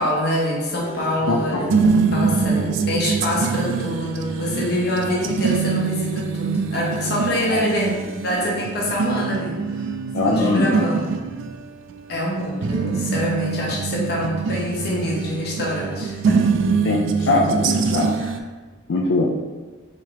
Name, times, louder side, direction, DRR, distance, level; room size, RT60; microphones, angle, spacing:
voice 1, 0.0-7.9 8.2-9.6 10.2-11.1 12.1-16.4 18.2-18.3, equal, 55° left, -3 dB, 1.0 m, -25 dB
sound 1, 0.9-18.4, right 5 dB, 70° right, 0.3 m, -24 dB
voice 2, 1.3-1.8 7.5-7.6 10.1-10.8 16.8-18.2 18.9-19.2, left 2 dB, 70° left, -2 dB, 0.4 m, -21 dB
4.6 x 3.3 x 2.9 m, 1.3 s
head